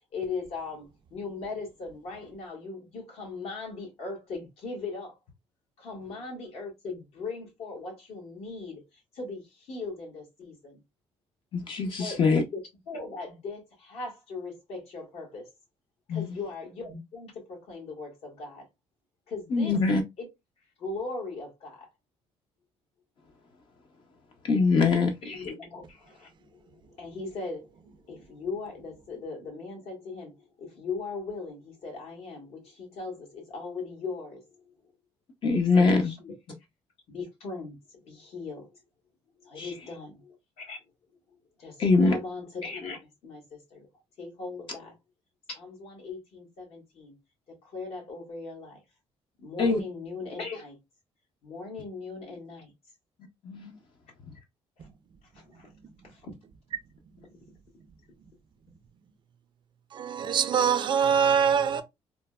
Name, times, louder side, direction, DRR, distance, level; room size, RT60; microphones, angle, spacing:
voice 1, 0.1-5.2 5.8-8.8 9.1-10.8 11.9-12.6 12.9-15.5 16.1-18.7 19.3-19.8 20.2-20.3 20.8-21.9 25.2-27.7 28.1-34.4 35.6-36.3 37.1-37.8 38.0-38.7 39.4-40.8 41.6-43.9 44.2-44.9 45.5-47.2 47.6-48.8 49.4-50.8 51.4-52.7 54.8-54.9 55.3-55.7 56.0-56.3, left 4 dB, 70° left, 1.4 m, -39 dB
voice 2, 11.5-12.4 16.1-16.3 19.5-20.0 24.4-25.1 35.4-36.1 39.6-39.7 41.8-42.1 49.6-49.8 53.4-53.8, left 4 dB, 50° left, 0.6 m, -23 dB
voice 3, 59.9-61.8, right 7 dB, 45° right, 0.4 m, -23 dB
3.1 x 2.0 x 2.2 m
cardioid pair, 115°, 11 cm